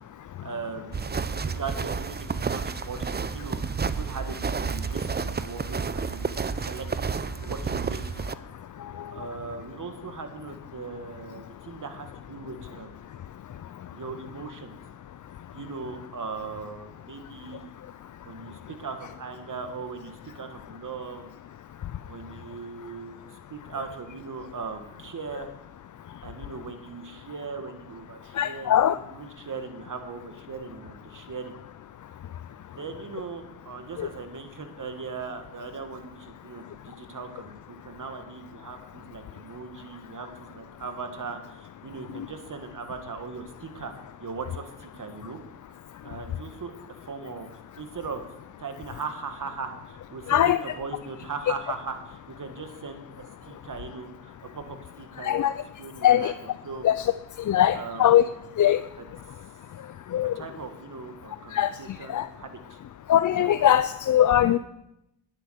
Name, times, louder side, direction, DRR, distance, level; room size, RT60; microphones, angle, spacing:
voice 1, 0.4-8.3 9.1-13.0 13.9-14.8 15.5-17.7 18.2-21.3 22.1-25.5 26.2-31.5 32.7-43.9 44.2-45.4 46.0-47.5 47.8-48.2 48.6-55.5 55.8-56.9 57.7-58.6 59.0-59.1 60.3-62.8 63.3-63.5, right 4 dB, 40° right, 7 dB, 2.0 m, -39 dB
sound 1, 0.9-8.3, right 5 dB, 20° right, 0.6 m, -30 dB
voice 2, 28.4-29.0 50.3-50.6 55.2-55.5 56.0-56.3 56.8-56.9 57.5-58.2 58.6-58.8 60.1-60.3 61.5-61.7 62.1-62.3 63.1-64.6, left 11 dB, 40° left, 13 dB, 0.5 m, -20 dB
10.5 x 9.7 x 6.5 m, 0.87 s
cardioid pair, 70°, 47 cm